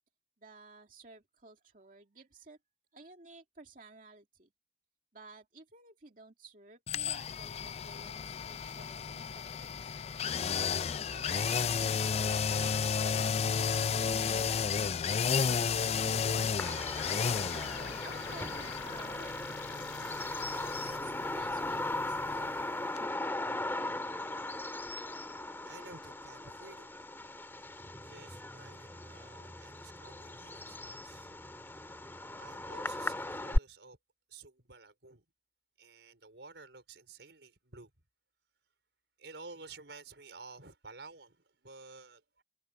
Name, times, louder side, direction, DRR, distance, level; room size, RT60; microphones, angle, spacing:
voice 1, 0.4-2.6 2.9-4.5 5.1-10.0 11.1-14.5 15.1-16.7 17.5-20.6 20.9-22.6, right 3 dB, 50° right, 2.4 m, -54 dB
sound 1, 6.9-22.7 23.0-23.1, left 6 dB, 35° left, 0.4 m, -33 dB
sound 2, 11.2-11.7 15.4-21.0, left 6 dB, 85° left, 3.8 m, -50 dB
Bird vocalization bird call bird song, 16.6-33.6, left 1 dB, 15° left, 1.8 m, -38 dB
voice 2, 24.9-31.4 32.3-34.0 34.3-35.2 35.8-37.9 39.2-42.4, right 4 dB, 85° right, 4.7 m, -53 dB
head